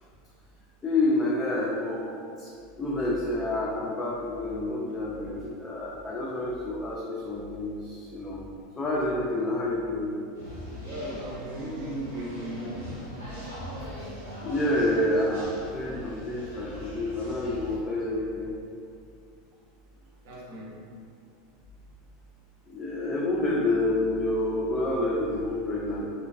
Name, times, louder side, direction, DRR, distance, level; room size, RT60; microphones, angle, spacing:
voice 1, 0.8-2.1 2.4-2.5 2.8-8.4 8.8-10.2 14.4-18.6 22.7-26.0, left 1 dB, 20° left, -5 dB, 0.3 m, -28 dB
sound 1, 10.3-17.8, equal, 80° right, 0.8 m, -41 dB
voice 2, 10.8-12.8 20.2-20.8, right 1 dB, 55° right, -4 dB, 0.6 m, -36 dB
2.4 x 2.2 x 2.3 m, 2.4 s
figure-of-eight pair, 80°, 0 cm